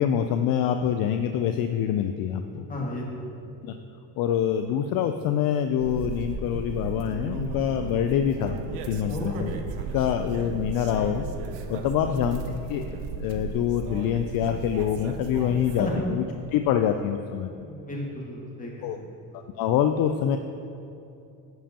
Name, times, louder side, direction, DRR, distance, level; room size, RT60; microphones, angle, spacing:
voice 1, 0.0-2.6 3.6-3.7 4.2-8.6 8.8-9.5 9.9-11.2 11.7-12.4 12.7-16.2 16.5-17.5 18.8-19.0 19.6-20.4, left 9 dB, 55° left, 7 dB, 0.5 m, -25 dB
voice 2, 2.7-3.3 9.1-9.6 12.0-12.3 15.8-15.9 17.6-19.1, left 1 dB, 20° left, -3 dB, 1.9 m, -34 dB
sound 1, 5.8-15.9, right 4 dB, 85° right, 0.8 m, -35 dB
10.5 x 7.5 x 2.9 m, 2.7 s
cardioid pair, 110°, 41 cm